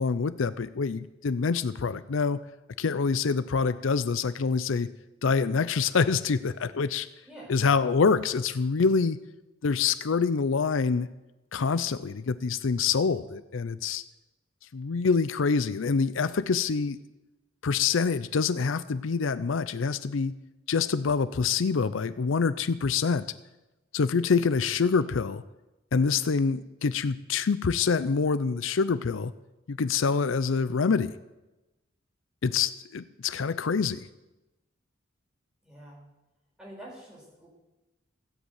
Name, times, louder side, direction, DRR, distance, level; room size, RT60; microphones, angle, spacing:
voice 1, 0.0-2.4 2.8-4.9 5.2-7.1 7.5-9.2 9.6-11.1 11.5-14.0 14.7-17.0 17.6-20.3 20.7-23.3 23.9-25.4 25.9-29.3 29.7-31.2 32.4-34.0, left 5 dB, 75° left, 14 dB, 0.5 m, -26 dB
voice 2, 7.2-7.6 35.6-36.0 36.6-37.5, right 1 dB, 5° right, -4 dB, 5.2 m, -46 dB
16.0 x 7.9 x 8.2 m, 1.0 s
head